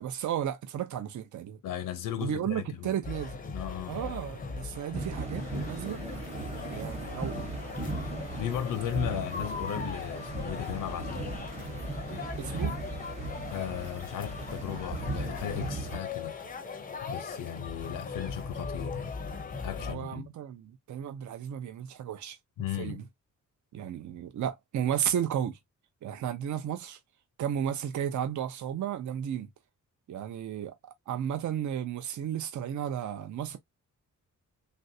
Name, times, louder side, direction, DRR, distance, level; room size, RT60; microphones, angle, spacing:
voice 1, 0.0-1.6 2.2-3.4 3.9-6.0 6.7-7.5 12.4-12.8 19.8-22.4 22.8-23.0 23.7-25.6 26.0-27.0 27.4-29.5 30.1-33.6, right 9 dB, 65° right, 0.6 m, -33 dB
voice 2, 1.6-3.0 3.5-4.0 8.4-11.3 13.5-16.3 17.0-19.1 19.6-20.3 22.6-23.0, left 10 dB, 80° left, 0.6 m, -36 dB
sound 1, 3.0-19.9, left 4 dB, 25° left, 0.5 m, -40 dB
sound 2, 4.9-16.0, right 2 dB, 20° right, 0.9 m, -37 dB
3.2 x 2.5 x 2.6 m
wide cardioid pair, 150°, 32 cm